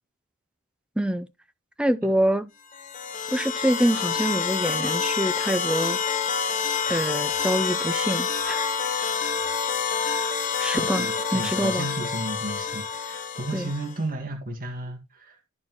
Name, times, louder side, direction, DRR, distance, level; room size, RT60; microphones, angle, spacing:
voice 1, 1.0-1.3 1.8-2.5 3.3-6.0 6.9-8.7 10.6-11.9 13.5-13.7, right 1 dB, 5° right, 0.4 m, -25 dB
sound 1, 2.7-14.0, left 6 dB, 35° left, 0.7 m, -27 dB
voice 2, 10.7-15.4, right 1 dB, 40° right, 1.6 m, -33 dB
12.5 x 4.3 x 2.9 m
head